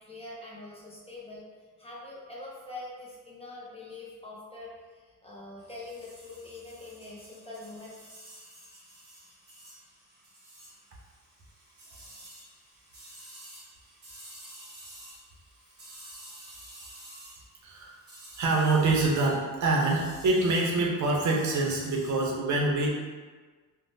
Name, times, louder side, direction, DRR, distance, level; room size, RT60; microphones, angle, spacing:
voice 1, 0.1-1.4 1.8-8.0, left 2 dB, 20° left, -5 dB, 0.4 m, -44 dB
sound 1, 5.6-22.1, right 1 dB, 30° right, 0.8 m, -51 dB
voice 2, 17.6-18.0 18.4-22.9, right 2 dB, 60° right, -1 dB, 0.6 m, -25 dB
3.3 x 2.0 x 2.6 m, 1.4 s
wide cardioid pair, 160°, 33 cm